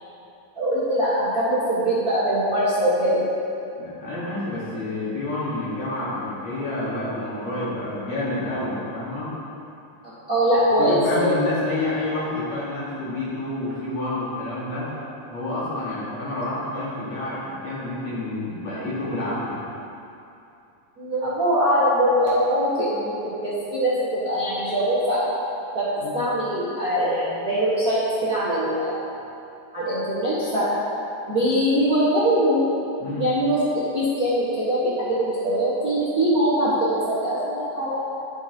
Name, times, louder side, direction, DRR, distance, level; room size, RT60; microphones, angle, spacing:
voice 1, 0.5-3.2 10.0-11.4 21.0-25.2 25.7-25.8 26.1-29.0 29.7-30.7 31.3-32.6 33.1-33.6 33.9-38.1, equal, 40° right, -13 dB, 1.3 m, -22 dB
voice 2, 3.8-9.3 10.8-14.9 15.3-19.6 26.0-26.2 33.0-33.3, left 2 dB, 55° left, -9 dB, 2.8 m, -29 dB
11.0 x 7.0 x 2.9 m, 2.7 s
omnidirectional pair, 4.0 m